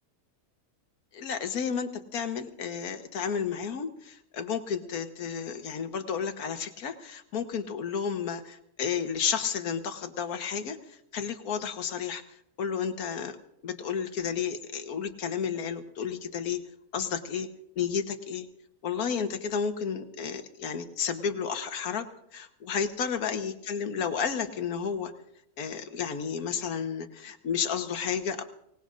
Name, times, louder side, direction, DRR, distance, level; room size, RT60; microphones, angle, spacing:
voice 1, 1.1-12.2 12.6-13.4 13.6-16.6 16.9-17.5 17.8-18.5 18.8-25.1 25.6-28.4, left 7 dB, 80° left, 7 dB, 1.6 m, -32 dB
24.5 x 18.5 x 2.6 m, 0.76 s
omnidirectional pair, 1.6 m